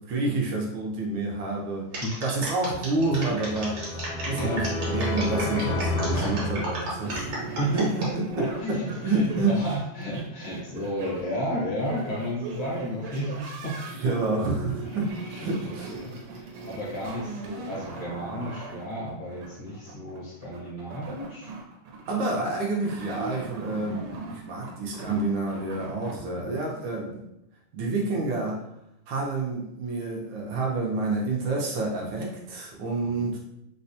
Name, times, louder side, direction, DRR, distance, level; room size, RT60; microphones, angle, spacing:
voice 1, 0.1-1.9 2.2-3.8 4.3-7.4 7.7-9.5 14.0-15.1 15.4-16.2 22.1-27.1 27.7-28.6 29.1-33.4, right 3 dB, 75° right, -1 dB, 1.2 m, -28 dB
sound 1, 1.9-8.1 8.6-9.0, right 1 dB, 55° right, 1.3 m, -34 dB
sound 2, 2.9-7.4, left 1 dB, 75° left, 1.4 m, -30 dB
sound 3, 7.0-26.1, right 4 dB, 90° right, 1.5 m, -40 dB
voice 2, 7.5-7.8 8.4-13.8 14.0-14.1 14.9-15.0 15.3-21.5 26.4-26.5 33.0-33.3, equal, 50° left, -6 dB, 0.5 m, -33 dB
4.1 x 2.1 x 2.7 m, 0.82 s
omnidirectional pair, 2.4 m